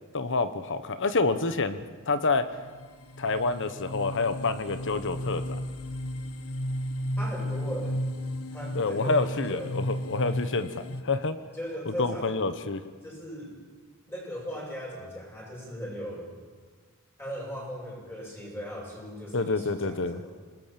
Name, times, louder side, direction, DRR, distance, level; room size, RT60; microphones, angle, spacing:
voice 1, 0.1-2.5 3.2-5.4 8.7-11.4 12.0-12.8 19.3-20.2, left 3 dB, 60° left, 11 dB, 1.2 m, -28 dB
sound 1, 2.0-2.1 2.5-11.0, equal, 90° left, 1.5 m, -34 dB
voice 2, 7.2-8.0 8.5-9.7 11.5-12.4 13.0-13.5 14.1-16.3 17.2-20.3, equal, 10° left, -2 dB, 8.0 m, -38 dB
26.5 x 20.0 x 7.6 m, 1.5 s
head